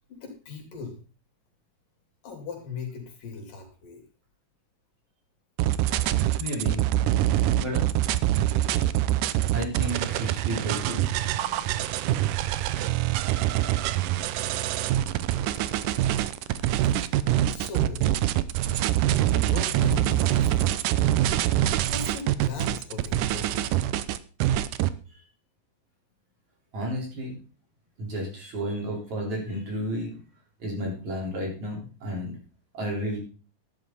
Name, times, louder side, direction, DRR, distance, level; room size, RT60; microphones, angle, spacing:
voice 1, 0.1-1.0 2.2-4.0 17.5-18.0 19.2-20.7 21.8-23.7, left 5 dB, 65° left, 2 dB, 4.7 m, -38 dB
sound 1, 5.6-24.9, right 13 dB, 75° right, 2.0 m, -25 dB
voice 2, 6.4-6.8 7.6-7.8 9.5-14.7 15.0-15.1 18.6-18.8 25.1-25.2 26.7-27.4 28.0-30.1 30.6-32.3 32.7-33.2, equal, 50° right, -1 dB, 5.5 m, -34 dB
12.0 x 11.5 x 4.1 m, 0.36 s
omnidirectional pair, 4.3 m